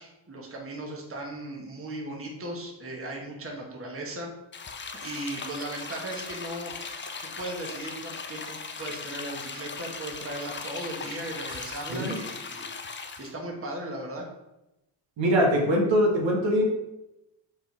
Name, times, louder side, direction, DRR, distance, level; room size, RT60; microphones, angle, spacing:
voice 1, 0.0-4.3 5.0-14.3, right 1 dB, 30° right, -1 dB, 1.4 m, -37 dB
sound 1, 4.5-13.3, left 4 dB, 25° left, 0.5 m, -38 dB
voice 2, 11.9-12.2 15.2-16.6, equal, 70° right, -2 dB, 1.7 m, -22 dB
5.4 x 3.9 x 4.6 m, 0.93 s
cardioid pair, 80°, 47 cm